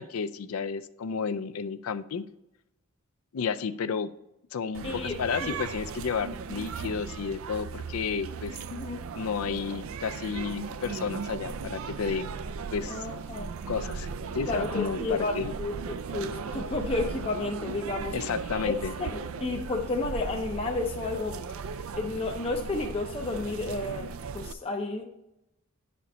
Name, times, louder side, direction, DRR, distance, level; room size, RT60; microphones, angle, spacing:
voice 1, 0.0-2.2 3.3-4.1 4.5-8.6 9.1-12.4 12.7-13.1 13.7-15.5 18.1-18.9, left 6 dB, 80° left, 12 dB, 0.4 m, -32 dB
sound 1, 4.7-24.5, right 5 dB, 70° right, 0.4 m, -37 dB
voice 2, 4.8-5.6 8.7-9.0 12.9-13.5 14.5-18.2 18.6-18.7 19.0-21.5 21.9-25.1, left 3 dB, 25° left, 2 dB, 0.5 m, -32 dB
10.5 x 4.3 x 4.1 m, 0.89 s
head